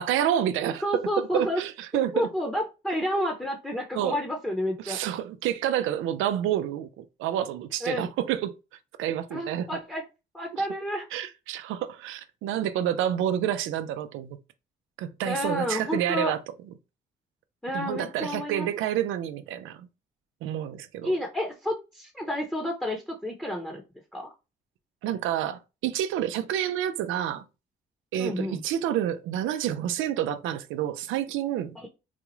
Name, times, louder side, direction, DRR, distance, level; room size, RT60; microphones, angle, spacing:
voice 1, 0.0-0.8 1.2-2.3 4.0-4.2 4.8-8.5 9.0-9.8 10.5-10.6 11.1-14.4 15.0-16.4 17.7-19.9 20.4-21.1 25.0-27.4 28.1-31.8, right 11 dB, 90° right, 0.5 m, -29 dB
voice 2, 0.8-1.6 2.1-5.0 7.8-8.0 9.3-10.0 10.3-11.0 15.2-16.3 17.6-18.7 21.0-23.8 24.1-24.3 28.2-28.6 31.7-31.9, equal, 5° left, 0.9 m, -30 dB
4.1 x 2.3 x 3.0 m
cardioid pair, 90°, 20 cm